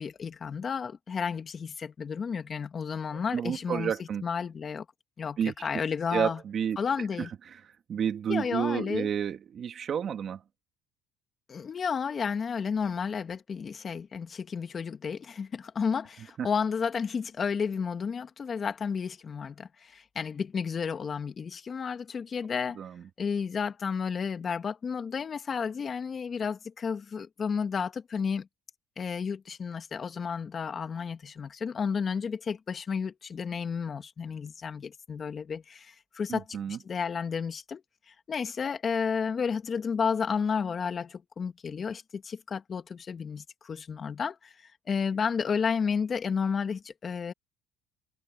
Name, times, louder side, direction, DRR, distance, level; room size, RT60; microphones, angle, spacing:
voice 1, 0.0-3.9 4.2-4.9 5.2-6.4 6.8-7.3 8.3-9.1 11.5-22.8 23.2-28.5 29.0-37.8 38.1-47.3, left 6 dB, 40° left, 2.3 m, -32 dB
voice 2, 3.3-4.2 5.4-5.5 6.1-6.8 7.9-10.4 16.4-16.5 22.8-23.0 36.3-36.8, right 8 dB, 50° right, 2.7 m, -30 dB
cardioid pair, 95°, 0 cm